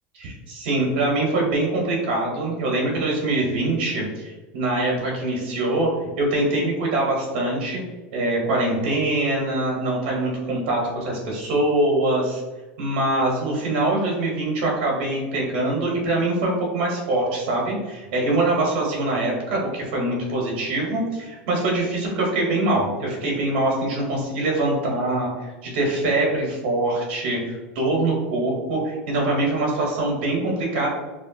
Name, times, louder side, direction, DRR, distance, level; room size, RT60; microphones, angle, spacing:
voice 1, 0.1-7.8 8.1-12.4 12.8-30.9, right 2 dB, 60° right, -2 dB, 1.0 m, -23 dB
3.2 x 2.3 x 2.7 m, 1.2 s
supercardioid pair, 180°, 6 cm